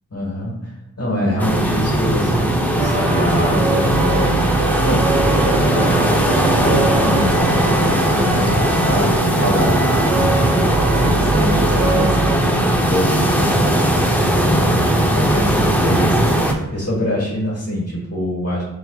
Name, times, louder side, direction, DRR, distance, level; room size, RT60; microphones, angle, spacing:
voice 1, 0.1-0.7 1.0-18.6, left 1 dB, 45° left, -5 dB, 1.3 m, -24 dB
sound 1, 1.4-16.5, right 1 dB, 5° left, 0.5 m, -18 dB
sound 2, 2.3-12.2, equal, 15° right, 1.3 m, -38 dB
sound 3, 2.8-12.4, right 4 dB, 75° right, 0.5 m, -24 dB
5.6 x 2.8 x 2.3 m, 0.93 s
wide cardioid pair, 95°, 35 cm